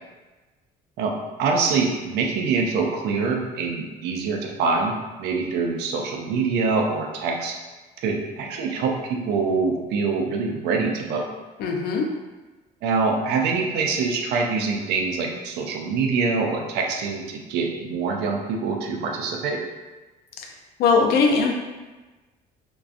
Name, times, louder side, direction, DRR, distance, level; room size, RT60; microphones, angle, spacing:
voice 1, 1.4-4.9 5.2-7.6 8.0-11.3 12.8-19.6, right 4 dB, 80° right, 2 dB, 0.4 m, -24 dB
voice 2, 11.6-12.1 20.4-20.5 20.8-21.5, left 4 dB, 70° left, 2 dB, 0.4 m, -20 dB
2.4 x 2.2 x 2.4 m, 1.2 s
cardioid pair, 110°, 17 cm